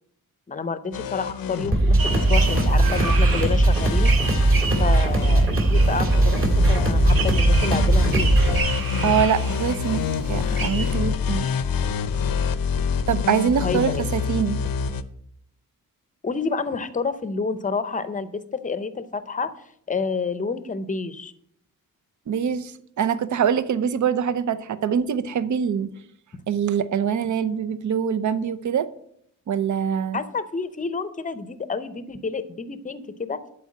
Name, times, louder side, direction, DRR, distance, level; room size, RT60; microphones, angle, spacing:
voice 1, 0.5-4.1 4.8-8.4 13.6-14.0 16.2-19.5 19.9-21.3 30.1-33.4, left 4 dB, 25° left, 0.6 m, -29 dB
sound 1, 0.9-15.0, left 5 dB, 90° left, 0.7 m, -27 dB
sound 2, 1.7-8.6, right 2 dB, 40° right, 2.2 m, -19 dB
sound 3, 2.0-11.0, right 5 dB, 85° right, 1.4 m, -32 dB
voice 2, 9.0-11.5 13.1-14.6 22.3-22.7 23.0-25.9 26.5-28.9 29.5-30.2, right 7 dB, 60° right, 0.6 m, -24 dB
11.0 x 4.5 x 7.5 m
wide cardioid pair, 160°, 34 cm